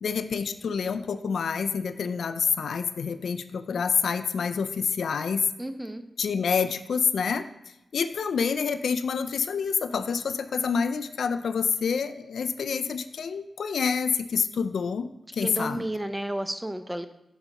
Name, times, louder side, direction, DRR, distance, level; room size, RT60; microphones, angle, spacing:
voice 1, 0.0-5.4 6.2-7.5 7.9-15.8, left 6 dB, 85° left, 10 dB, 0.3 m, -27 dB
voice 2, 5.6-6.0 15.4-17.0, right 1 dB, 10° right, 9 dB, 0.4 m, -32 dB
6.9 x 5.3 x 2.9 m, 0.84 s
wide cardioid pair, 85°, 0 cm